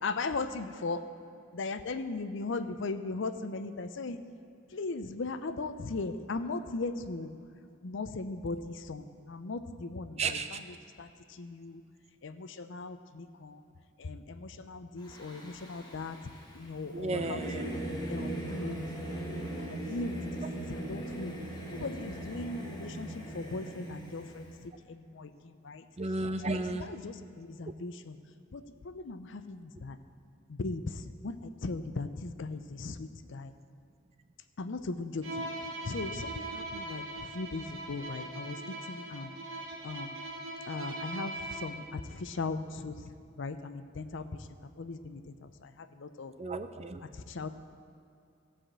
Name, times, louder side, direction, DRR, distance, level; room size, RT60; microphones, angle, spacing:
voice 1, 0.0-1.0 1.5-4.2 4.7-7.3 7.8-11.8 12.2-13.6 14.0-16.2 16.5-17.8 18.1-19.2 19.6-21.3 21.7-25.8 26.4-28.2 28.5-30.0 30.5-33.5 34.6-35.5 35.8-39.3 39.8-40.2 40.7-46.3 47.0-47.5, left 3 dB, 65° left, 10 dB, 0.6 m, -38 dB
Singing / Musical instrument, 15.0-24.6, right 1 dB, 20° left, 1.5 m, -39 dB
voice 2, 16.9-17.6 26.0-26.8 46.4-47.0, right 3 dB, 30° right, 9 dB, 0.5 m, -33 dB
Bowed string instrument, 35.2-41.9, right 2 dB, 75° right, 2.3 m, -40 dB
15.0 x 5.0 x 7.4 m, 2.5 s
head